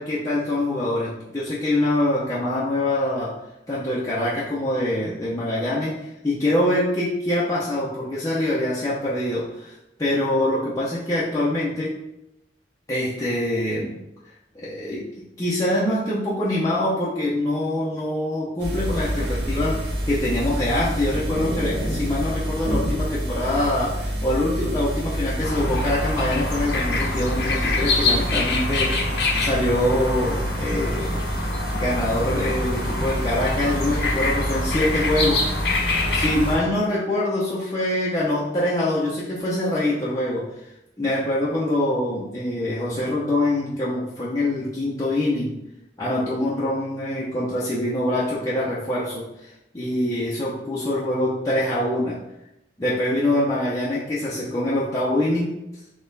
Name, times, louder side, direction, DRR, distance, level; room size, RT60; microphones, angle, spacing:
voice 1, 0.0-3.3 3.7-11.9 12.9-14.0 14.5-15.0 15.4-29.0 29.4-31.2 31.7-35.4 36.1-40.4 41.0-45.5 46.0-52.2 52.8-55.5, left 1 dB, 20° left, -8 dB, 0.7 m, -24 dB
sound 1, 18.6-36.6, equal, 75° right, 1.1 m, -27 dB
sound 2, 25.4-36.7, left 3 dB, 65° left, 0.9 m, -26 dB
4.1 x 3.0 x 3.9 m, 0.87 s
head